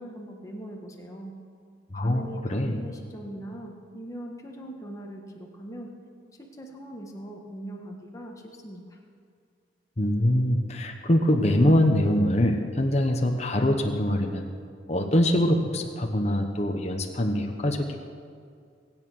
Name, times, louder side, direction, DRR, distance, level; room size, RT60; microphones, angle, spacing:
voice 1, 0.0-1.3 1.9-5.9 6.4-9.0, right 1 dB, 15° left, 0 dB, 1.6 m, -41 dB
voice 2, 1.9-2.8 10.0-14.4 14.9-17.9, left 1 dB, 35° left, 3 dB, 1.1 m, -23 dB
22.0 x 9.1 x 6.4 m, 2.2 s
head